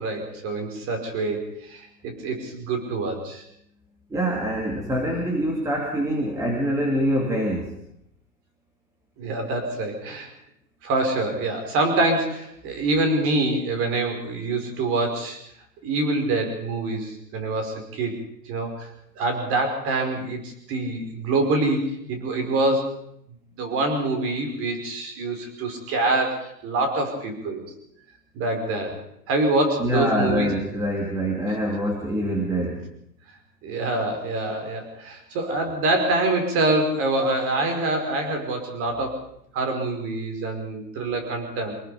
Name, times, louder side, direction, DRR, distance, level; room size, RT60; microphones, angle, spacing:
voice 1, 0.0-3.4 9.2-10.3 10.8-15.4 15.8-18.1 18.5-18.9 19.2-22.9 23.6-27.6 28.3-29.0 29.3-30.5 33.6-39.2 39.5-41.7, right 2 dB, 25° right, 4 dB, 5.5 m, -25 dB
voice 2, 4.1-7.7 29.8-32.8, equal, 5° right, 0 dB, 2.7 m, -25 dB
25.0 x 20.0 x 5.2 m, 0.72 s
hypercardioid pair, 140°, 49 cm